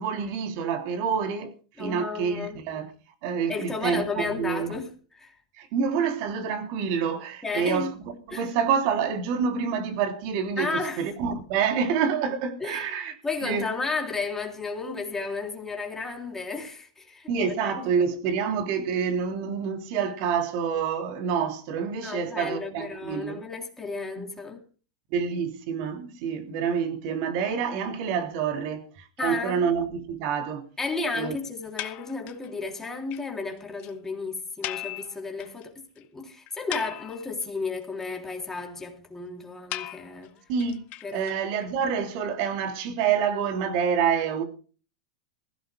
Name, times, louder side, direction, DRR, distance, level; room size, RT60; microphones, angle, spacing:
voice 1, 0.0-1.5 1.8-2.9 3.2-4.7 5.6-7.9 8.3-13.1 13.4-13.7 17.3-23.4 24.2-24.3 25.1-28.9 29.2-30.7 31.2-31.3 40.5-40.8 41.1-44.4, right 6 dB, 55° right, 3.3 m, -27 dB
voice 2, 1.8-2.6 3.5-5.3 7.4-7.9 8.3-8.5 10.6-11.0 12.6-17.9 22.0-24.6 29.2-29.7 30.8-40.4 41.0-41.3, left 4 dB, 10° left, 3.4 m, -33 dB
sound 1, 31.8-32.5 32.8-32.9 33.1-33.2 33.5-33.6 33.8-33.9 34.6-35.6 36.0-36.1 36.5-37.4 39.7-41.7, left 16 dB, 45° left, 1.1 m, -37 dB
21.5 x 16.0 x 2.3 m
hypercardioid pair, 115°, 4 cm